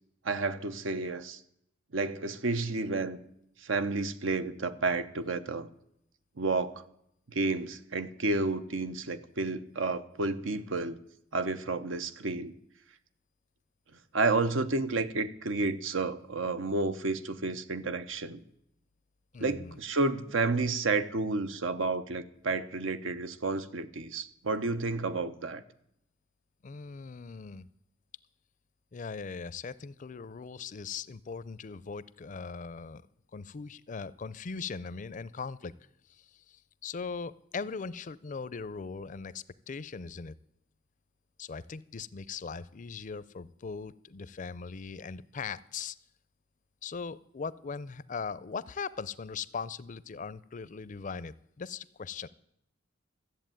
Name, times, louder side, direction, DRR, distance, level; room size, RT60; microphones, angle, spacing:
voice 1, 0.2-1.4 1.9-3.2 3.6-5.7 6.4-6.8 7.3-11.0 11.3-12.5 14.1-18.4 19.4-25.6, right 3 dB, 85° right, 11 dB, 0.9 m, -31 dB
voice 2, 19.3-19.8 26.6-27.7 28.9-33.0 33.3-35.7 36.1-40.3 41.4-46.0 46.8-52.3, left 5 dB, 40° left, 18 dB, 0.5 m, -40 dB
13.5 x 7.9 x 9.0 m, 0.75 s
head